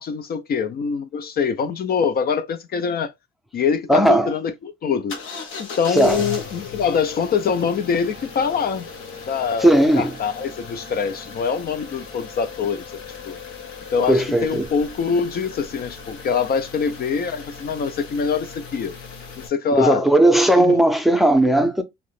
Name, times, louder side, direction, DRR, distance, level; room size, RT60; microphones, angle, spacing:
voice 1, 0.0-3.1 3.5-5.2 5.6-8.9 9.3-12.9 13.3-13.4 13.9-18.9 19.4-20.0 20.5-20.8, left 6 dB, 50° left, 0.4 m, -24 dB
voice 2, 3.9-4.3 5.9-6.3 9.6-10.1 14.1-14.7 19.8-21.8, right 1 dB, ahead, 0.5 m, -16 dB
sound 1, 5.1-19.5, left 5 dB, 85° left, 0.8 m, -37 dB
2.8 x 2.0 x 3.0 m
cardioid pair, 90°, 20 cm